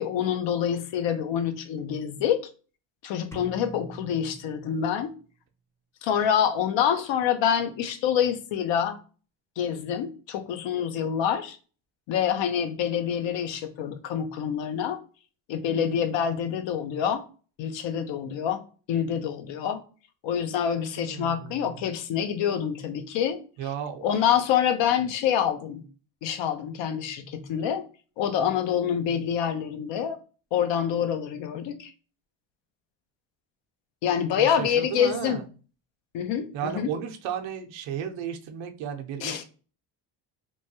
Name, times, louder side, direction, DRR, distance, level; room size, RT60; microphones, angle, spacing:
voice 1, 0.0-2.4 3.0-5.1 6.0-9.0 9.6-11.6 12.1-15.0 15.5-17.2 17.6-18.6 18.9-19.8 20.2-23.4 24.0-25.8 26.2-27.8 28.2-30.2 30.5-31.9 34.0-35.4 36.1-36.9 39.2-39.4, left 8 dB, 65° left, 8 dB, 0.7 m, -26 dB
sound 1, 3.3-5.2, right 1 dB, 5° left, 0.5 m, -43 dB
voice 2, 21.0-21.8 23.6-24.0 34.4-35.4 36.5-39.4, right 8 dB, 70° right, 5 dB, 0.7 m, -34 dB
3.1 x 2.2 x 2.7 m, 0.37 s
cardioid pair, 95°, 48 cm